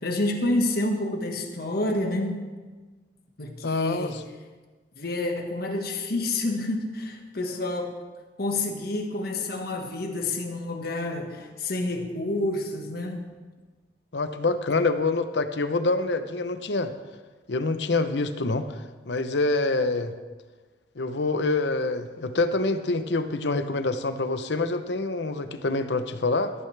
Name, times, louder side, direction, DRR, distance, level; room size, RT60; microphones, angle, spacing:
voice 1, 0.0-2.4 3.4-4.2 5.0-7.9 8.4-13.3, left 2 dB, 60° left, 3 dB, 1.6 m, -28 dB
voice 2, 3.6-4.2 14.1-16.9 17.5-20.1 21.0-26.5, left 3 dB, 80° left, 10 dB, 0.8 m, -26 dB
14.0 x 14.0 x 3.4 m, 1.3 s
head